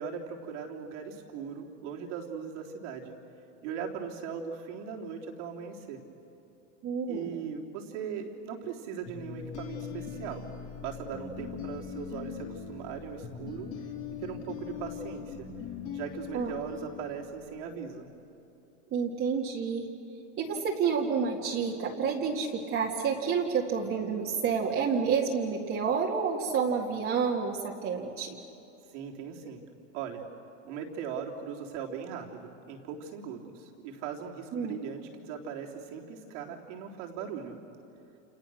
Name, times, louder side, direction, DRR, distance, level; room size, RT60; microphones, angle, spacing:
voice 1, 0.0-3.1 3.6-6.0 7.1-10.5 10.8-13.7 14.2-15.5 15.9-18.1 28.9-29.6 29.9-30.2 30.6-37.6, right 7 dB, 70° right, 0 dB, 3.7 m, -39 dB
voice 2, 6.8-7.3 16.3-16.5 18.9-19.9 20.4-28.4 34.5-34.8, right 6 dB, 35° right, -2 dB, 2.1 m, -29 dB
sound 1, 9.1-17.8, left 7 dB, 50° left, 3.0 m, -41 dB
29.0 x 28.5 x 6.5 m, 2.9 s
supercardioid pair, 140°, 37 cm